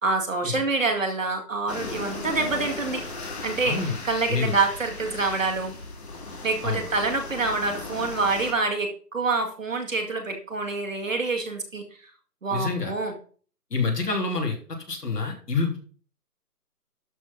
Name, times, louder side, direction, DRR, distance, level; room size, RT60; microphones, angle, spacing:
voice 1, 0.0-3.0 3.4-5.8 6.4-11.9 12.4-13.1, right 3 dB, 50° right, 4 dB, 2.1 m, -26 dB
sound 1, 1.7-8.5, left 3 dB, 40° left, 2.5 m, -37 dB
voice 2, 12.5-12.9 13.7-14.6 14.9-15.8, left 4 dB, 75° left, 1 dB, 3.5 m, -27 dB
12.0 x 4.3 x 5.8 m, 0.42 s
hypercardioid pair, 175°, 48 cm